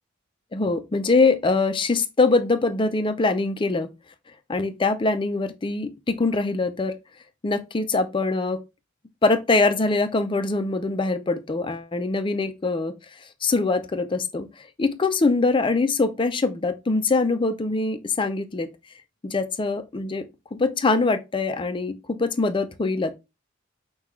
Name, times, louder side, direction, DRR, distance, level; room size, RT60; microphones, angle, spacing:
voice 1, 0.5-3.9 4.5-7.0 7.4-8.6 9.2-12.9 13.4-18.7 19.2-20.2 20.5-23.1, left 3 dB, 25° left, 0.4 m, -23 dB
5.7 x 2.3 x 3.0 m
head